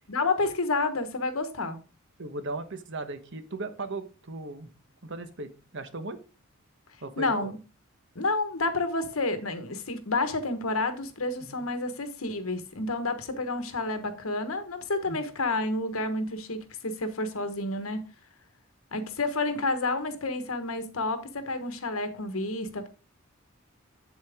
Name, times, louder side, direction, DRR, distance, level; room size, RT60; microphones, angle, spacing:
voice 1, 0.1-1.8 7.2-7.6 8.1-18.0 18.9-22.9, left 2 dB, 90° left, 1.3 m, -30 dB
voice 2, 2.2-4.7 5.0-6.2 7.0-7.5 11.4-11.6 15.1-15.2, right 2 dB, 60° right, 1.1 m, -37 dB
8.0 x 7.3 x 3.6 m
head